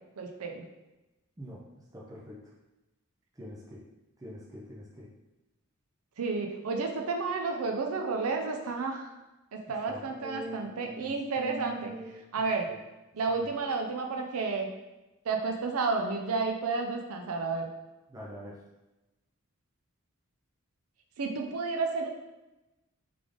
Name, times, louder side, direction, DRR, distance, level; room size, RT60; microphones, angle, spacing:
voice 1, 0.2-0.6 6.2-9.1 9.5-11.9 12.3-12.7 13.1-14.7 15.3-17.7 21.2-22.1, right 4 dB, 85° right, 3 dB, 0.5 m, -31 dB
voice 2, 1.9-2.4 3.4-3.8 4.2-5.1 9.9-12.2 12.7-12.8 13.3-13.4 18.1-18.6, right 1 dB, 15° right, -5 dB, 0.5 m, -43 dB
3.7 x 3.4 x 3.4 m, 1.0 s
head